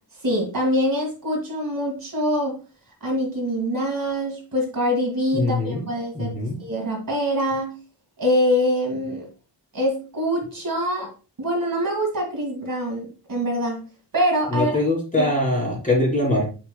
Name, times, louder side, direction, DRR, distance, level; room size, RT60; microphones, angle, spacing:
voice 1, 0.2-2.6 3.0-6.3 6.6-7.7 8.2-9.3 9.7-11.1 11.4-13.8 14.1-14.8 15.2-15.3, equal, 50° right, 0 dB, 2.1 m, -24 dB
voice 2, 5.3-5.8 6.1-6.6 14.5-16.5, left 1 dB, 20° left, -3 dB, 3.2 m, -22 dB
7.8 x 5.6 x 2.3 m, 0.35 s
wide cardioid pair, 145°, 43 cm